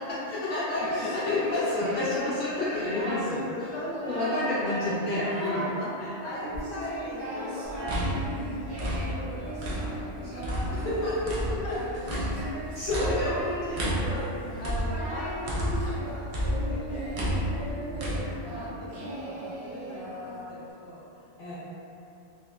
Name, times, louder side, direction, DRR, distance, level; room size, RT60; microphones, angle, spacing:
voice 1, 0.0-3.7 4.0-5.7 10.7-11.6 12.7-14.1 21.4-21.6, left 2 dB, 55° left, -12 dB, 0.6 m, -29 dB
Singing, 0.7-2.2 2.6-3.4 3.8-4.6 4.9-5.8 6.2-20.7, equal, 70° right, 0.9 m, -37 dB
voice 2, 1.0-1.8 2.1-2.9 3.2-4.9 5.2-11.3 11.6-11.8 12.1-12.5 13.2-13.3 13.7-16.4 16.7-17.4 17.7-21.6, left 1 dB, 80° left, -5 dB, 0.9 m, -41 dB
sound 1, 7.7-10.1 10.4-16.0 16.3-18.2, equal, 50° right, 0.4 m, -31 dB
2.9 x 2.1 x 2.3 m, 2.7 s
omnidirectional pair, 1.1 m